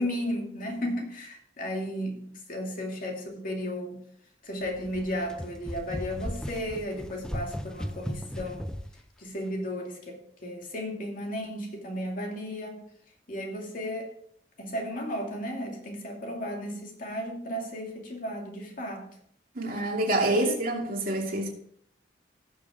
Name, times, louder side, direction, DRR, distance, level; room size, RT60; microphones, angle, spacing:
voice 1, 0.0-4.0 4.4-8.6 9.2-12.8 13.3-14.1 14.6-19.1 20.3-20.6, equal, 50° left, 2.4 m, -34 dB
sound 1, 4.6-9.0, equal, 5° left, 0.7 m, -36 dB
voice 2, 19.5-21.5, right 1 dB, 55° right, 2.8 m, -27 dB
18.5 x 6.3 x 3.6 m
head